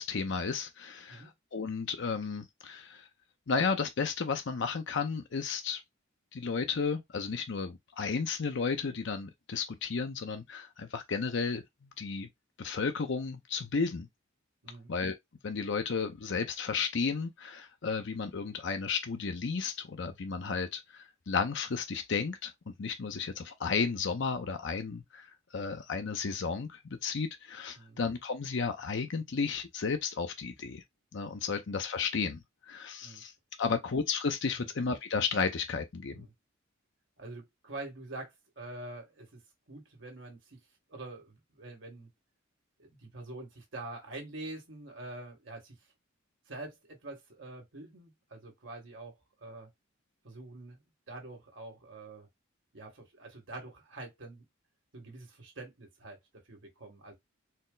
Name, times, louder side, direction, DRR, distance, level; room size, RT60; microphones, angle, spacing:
voice 1, 0.0-3.0 3.5-5.8 6.3-11.6 12.0-12.3 12.6-14.1 14.9-15.2 15.4-30.8 31.1-33.3 33.6-36.3, left 5 dB, 60° left, 0.6 m, -33 dB
voice 2, 37.2-39.4 39.7-40.6 40.9-42.1 42.8-45.7 46.5-49.7 50.2-50.8 51.1-52.3 52.7-54.4 54.9-56.2 56.5-57.1, right 2 dB, 65° right, 1.6 m, -45 dB
4.3 x 2.0 x 3.8 m
head